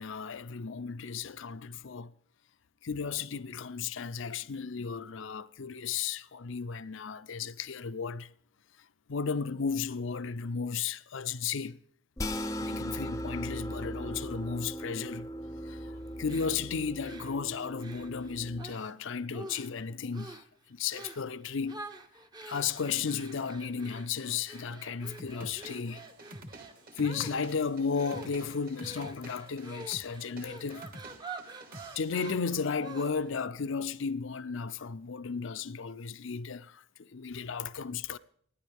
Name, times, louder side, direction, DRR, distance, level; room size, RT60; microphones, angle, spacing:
voice 1, 0.0-2.1 2.8-8.3 9.1-11.8 12.6-15.3 15.7-15.9 16.2-20.4 20.7-21.8 22.5-26.0 27.0-30.9 31.9-38.2, left 5 dB, 65° left, 0.5 m, -34 dB
sound 1, 12.2-18.6, equal, 15° left, 0.6 m, -38 dB
sound 2, 16.3-18.9 19.3-19.8 20.1-20.5 20.9-21.3 21.7-33.4, right 3 dB, 20° right, 0.7 m, -47 dB
sound 3, 25.2-32.4, right 1 dB, 45° right, 1.4 m, -49 dB
30.0 x 10.0 x 3.5 m
head